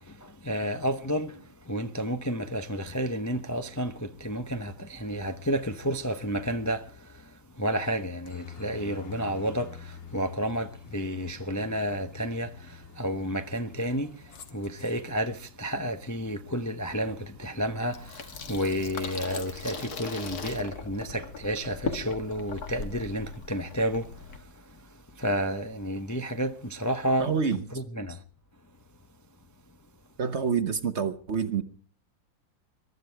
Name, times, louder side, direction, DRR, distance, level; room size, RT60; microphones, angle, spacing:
voice 1, 0.4-1.3 1.7-6.8 7.6-9.7 10.1-12.5 13.0-14.1 14.5-18.0 18.5-24.1 25.2-28.2, equal, 20° left, 0.4 m, -30 dB
Aircraft, 8.3-15.1, left 6 dB, 80° left, 2.2 m, -47 dB
Water tap faucet / Sink (filling or washing), 17.9-24.4, left 5 dB, 55° left, 2.0 m, -38 dB
voice 2, 27.2-27.6 30.2-31.6, right 6 dB, 45° right, 1.1 m, -27 dB
23.0 x 12.5 x 4.6 m
omnidirectional pair, 2.0 m